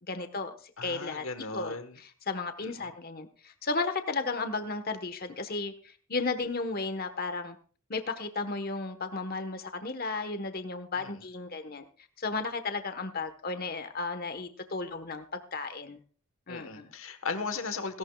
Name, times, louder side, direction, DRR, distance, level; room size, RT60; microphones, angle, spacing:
voice 1, 0.0-1.2 1.5-7.6 7.9-11.8 12.2-16.0 16.5-16.9, left 3 dB, 45° left, 9 dB, 1.2 m, -34 dB
voice 2, 0.8-2.0 2.6-2.9 11.0-11.2 16.5-18.0, left 4 dB, 65° left, 9 dB, 1.3 m, -37 dB
17.5 x 17.0 x 2.4 m, 0.41 s
head